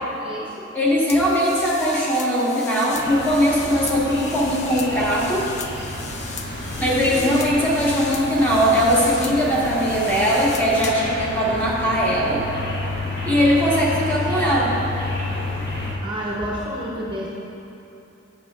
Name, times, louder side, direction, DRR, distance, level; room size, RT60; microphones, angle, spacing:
voice 1, 0.0-0.7 16.0-17.3, equal, 25° right, -4 dB, 0.7 m, -29 dB
voice 2, 0.7-5.5 6.8-12.4 13.3-14.7, equal, 10° left, -6 dB, 1.3 m, -20 dB
sound 1, 1.1-11.1, left 5 dB, 35° left, 0.5 m, -36 dB
sound 2, 2.9-15.9, left 1 dB, 60° left, 1.4 m, -30 dB
11.0 x 7.2 x 2.4 m, 2.8 s
head